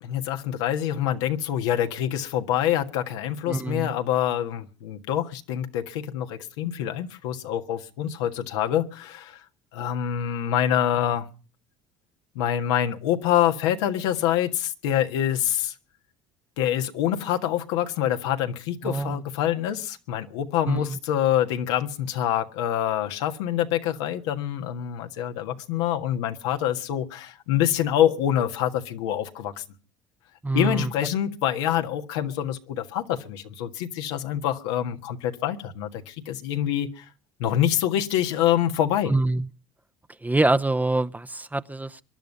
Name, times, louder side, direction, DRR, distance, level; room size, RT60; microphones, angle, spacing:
voice 1, 0.0-9.4 9.7-11.3 12.3-15.7 16.6-29.6 30.5-37.0 37.4-39.1, left 11 dB, 85° left, 1.6 m, -26 dB
voice 2, 3.5-3.9 18.8-19.2 20.6-21.0 30.4-30.9 39.1-39.5 40.2-42.0, right 2 dB, 10° right, 0.8 m, -25 dB
23.5 x 11.0 x 5.4 m
supercardioid pair, 80°, 14 cm